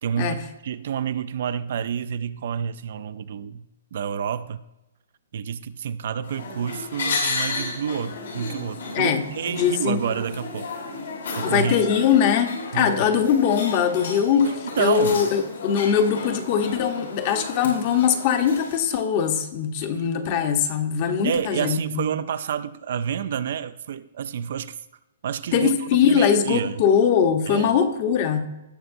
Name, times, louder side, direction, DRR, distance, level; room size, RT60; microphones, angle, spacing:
voice 1, 0.0-4.6 5.3-10.7 11.3-11.8 12.7-13.2 14.8-15.2 21.2-24.8 25.2-26.8 27.5-27.7, right 8 dB, 55° right, 0.4 m, -29 dB
sound 1, 6.2-18.8, left 3 dB, 80° left, 3.8 m, -33 dB
voice 2, 9.5-10.0 11.4-22.0 25.5-28.5, left 7 dB, 35° left, 0.9 m, -21 dB
17.5 x 6.4 x 2.6 m
hypercardioid pair, 160°, 0 cm